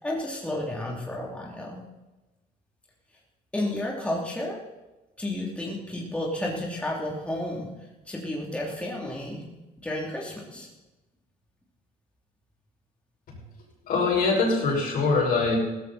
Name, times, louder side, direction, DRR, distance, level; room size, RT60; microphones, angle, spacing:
voice 1, 0.0-1.8 3.5-4.6 5.2-7.7 8.1-9.4 9.8-10.7, left 1 dB, 5° left, -3 dB, 2.9 m, -31 dB
voice 2, 13.9-15.6, left 3 dB, 60° left, -1 dB, 5.8 m, -23 dB
16.5 x 14.0 x 4.2 m, 1.1 s
cardioid pair, 110°, 17 cm